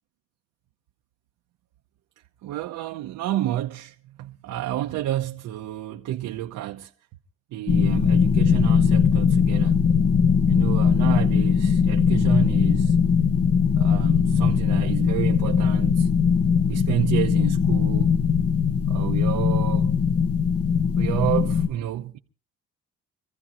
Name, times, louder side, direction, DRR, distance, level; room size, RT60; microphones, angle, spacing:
voice 1, 2.4-6.9 7.5-9.8 10.5-12.9 13.8-16.1 16.7-18.1 18.9-19.9 21.0-22.2, right 13 dB, 85° right, 0.9 m, -30 dB
sound 1, 7.7-21.7, left 6 dB, 50° left, 1.3 m, -20 dB
25.5 x 15.0 x 3.0 m
cardioid pair, 90°, 30 cm